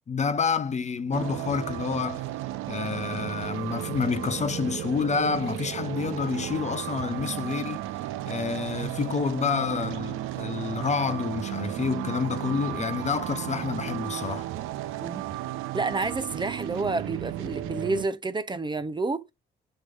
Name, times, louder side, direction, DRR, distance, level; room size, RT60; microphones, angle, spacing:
voice 1, 0.1-2.2 2.7-7.9 8.2-14.5, left 5 dB, 35° left, 0.6 m, -28 dB
sound 1, 1.1-18.1, right 14 dB, 75° right, 0.6 m, -34 dB
voice 2, 15.7-19.2, right 3 dB, 20° right, 0.7 m, -29 dB
6.4 x 3.0 x 2.4 m
supercardioid pair, 70°, 21 cm